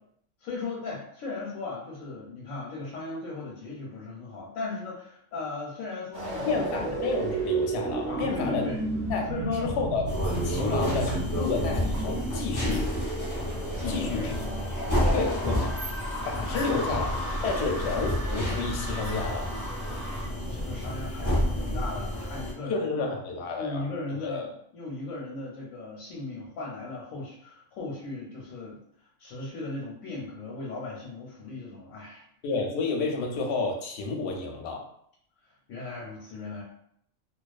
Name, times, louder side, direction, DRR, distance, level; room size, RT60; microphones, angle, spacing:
voice 1, 0.4-6.9 8.1-8.8 9.3-9.7 13.8-15.4 16.1-16.6 16.9-17.0 19.8-23.1 23.6-28.8 29.2-32.2 33.2-33.3 35.4-36.6, left 3 dB, 85° left, -4 dB, 1.0 m, -37 dB
sound 1, 6.1-20.3, right 2 dB, 35° right, 0.4 m, -34 dB
voice 2, 6.5-8.6 9.1-10.0 10.4-12.9 13.9-14.4 15.1-15.7 16.2-17.2 17.4-19.5 22.7-23.9 24.2-24.5 32.4-34.9, left 4 dB, 65° left, 1 dB, 0.7 m, -30 dB
sound 2, 10.1-22.5, left 1 dB, 25° left, 0.4 m, -30 dB
2.3 x 2.2 x 2.4 m, 0.68 s
omnidirectional pair, 1.4 m